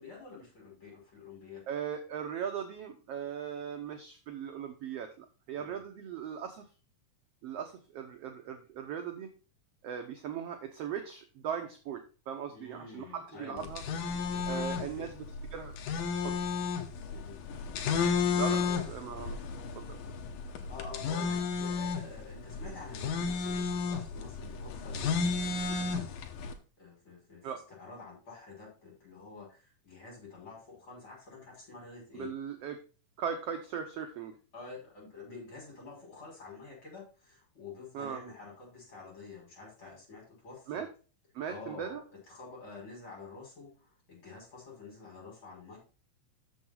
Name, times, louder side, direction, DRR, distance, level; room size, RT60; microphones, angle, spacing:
voice 1, 0.0-1.6 5.5-5.7 12.5-13.7 14.5-14.8 17.1-17.4 18.1-18.8 20.7-26.0 26.8-32.3 34.5-40.8 41.5-42.0 42.3-45.8, left 4 dB, 35° left, -3 dB, 6.3 m, -48 dB
voice 2, 1.7-6.7 7.4-9.3 9.8-13.8 14.5-15.8 16.2-16.4 18.3-19.4 19.8-20.0 27.4-27.6 32.1-32.8 33.2-34.4 37.9-38.2 40.7-40.9 41.3-42.0, right 8 dB, 75° right, 5 dB, 1.5 m, -39 dB
sound 1, 13.6-26.5, left 5 dB, 90° left, 2.7 m, -33 dB
7.7 x 7.0 x 4.6 m, 0.35 s
omnidirectional pair, 3.8 m